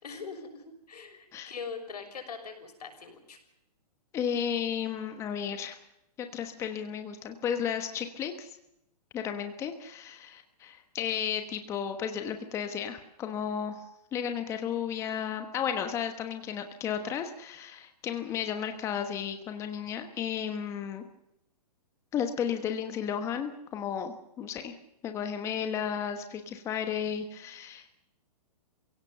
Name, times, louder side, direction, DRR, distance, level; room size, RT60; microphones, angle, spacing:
voice 1, 0.0-3.4, left 5 dB, 80° left, 5 dB, 6.4 m, -42 dB
voice 2, 4.1-5.8 6.2-8.6 9.1-13.8 14.1-21.0 22.1-24.7 25.0-27.9, left 8 dB, 15° left, 7 dB, 1.2 m, -33 dB
28.0 x 17.0 x 6.7 m, 0.83 s
hypercardioid pair, 160°, 20 cm